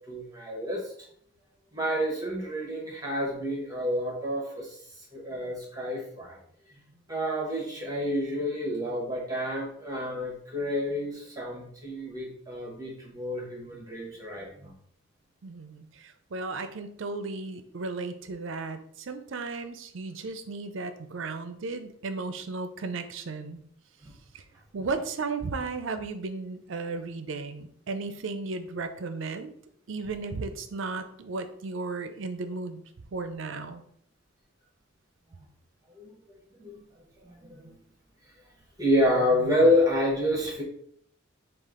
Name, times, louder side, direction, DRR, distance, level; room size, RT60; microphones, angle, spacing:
voice 1, 0.1-0.8 1.7-4.8 5.1-6.4 7.1-14.7 24.0-24.1 36.0-36.1 36.6-36.7 37.2-37.7 38.8-40.6, left 1 dB, 15° right, -2 dB, 0.9 m, -28 dB
voice 2, 15.4-23.6 24.3-24.4 24.7-29.5 29.9-32.8 33.1-33.8, right 3 dB, 65° right, 9 dB, 0.5 m, -35 dB
5.0 x 2.4 x 3.6 m, 0.65 s
head